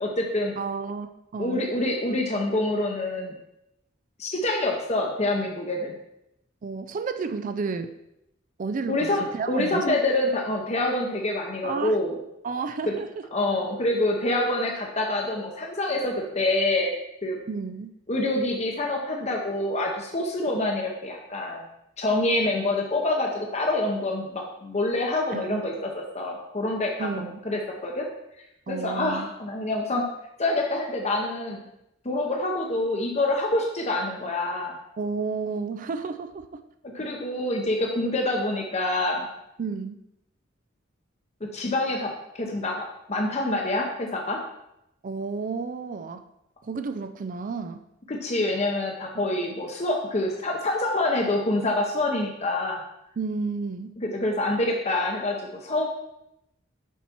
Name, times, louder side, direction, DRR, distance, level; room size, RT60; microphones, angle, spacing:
voice 1, 0.0-0.5 1.4-3.3 4.2-6.0 8.9-12.2 12.8-13.0 13.3-16.9 17.2-17.4 18.1-21.6 22.0-27.1 27.4-28.1 28.7-30.0 30.4-31.6 32.0-34.7 36.9-39.3 41.4-42.1 42.3-42.7 43.1-44.4 48.1-52.8 54.0-55.9, left 2 dB, 35° left, 0 dB, 0.9 m, -26 dB
voice 2, 0.6-1.7 6.6-8.0 8.6-10.0 11.6-12.0 12.4-13.2 17.5-17.9 25.3-25.6 27.0-27.4 28.7-29.3 35.0-36.6 39.6-40.0 45.0-46.2 46.6-47.8 49.1-49.3 53.2-54.0, right 4 dB, 45° right, 8 dB, 0.4 m, -31 dB
7.2 x 5.7 x 4.5 m, 0.84 s
head